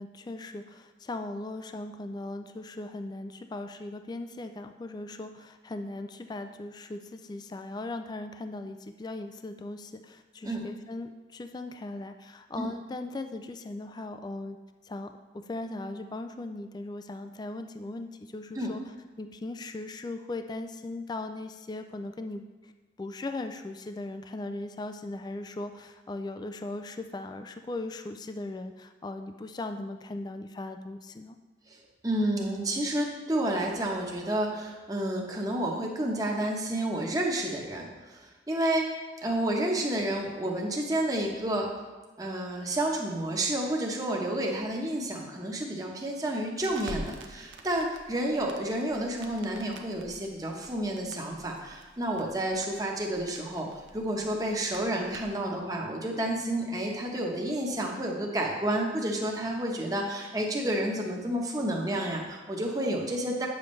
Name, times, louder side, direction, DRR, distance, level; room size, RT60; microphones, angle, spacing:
voice 1, 0.0-14.6 14.8-18.8 19.2-22.4 23.0-31.4, left 2 dB, 25° left, 7 dB, 0.3 m, -38 dB
voice 2, 32.0-38.9 39.2-41.7 42.2-63.5, right 1 dB, 20° right, -1 dB, 1.0 m, -30 dB
Crackle, 46.6-55.5, right 1 dB, 85° right, 0.7 m, -48 dB
9.1 x 7.0 x 3.2 m, 1.2 s
head